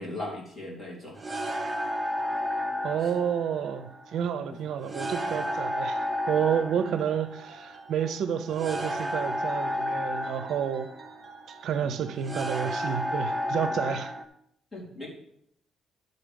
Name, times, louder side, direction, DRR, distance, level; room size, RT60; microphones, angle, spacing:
voice 1, 0.0-1.6 3.0-3.1 4.5-4.6 6.8-6.9 11.8-12.1 13.7-13.8 14.7-15.1, left 2 dB, 20° left, -3 dB, 3.0 m, -39 dB
sound 1, 1.2-14.2, equal, 20° right, 0.7 m, -32 dB
voice 2, 2.8-10.9 11.6-14.1, right 8 dB, 70° right, 10 dB, 0.6 m, -30 dB
sound 2, 6.8-12.6, right 5 dB, 35° right, 1.9 m, -52 dB
11.5 x 4.0 x 5.2 m, 0.69 s
cardioid pair, 125°, 0 cm